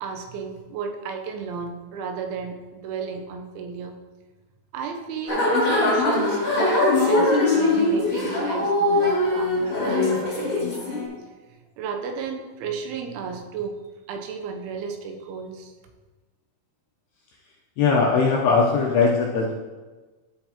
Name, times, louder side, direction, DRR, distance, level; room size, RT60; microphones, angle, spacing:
voice 1, 0.0-3.9 4.7-11.0 11.8-13.8 14.1-15.7, right 5 dB, 85° right, 4 dB, 3.1 m, -33 dB
sound 1, 5.3-11.0, left 2 dB, 30° left, 1.4 m, -21 dB
voice 2, 17.8-19.5, left 4 dB, 85° left, -2 dB, 2.3 m, -20 dB
12.5 x 5.6 x 2.9 m, 1.3 s
omnidirectional pair, 5.5 m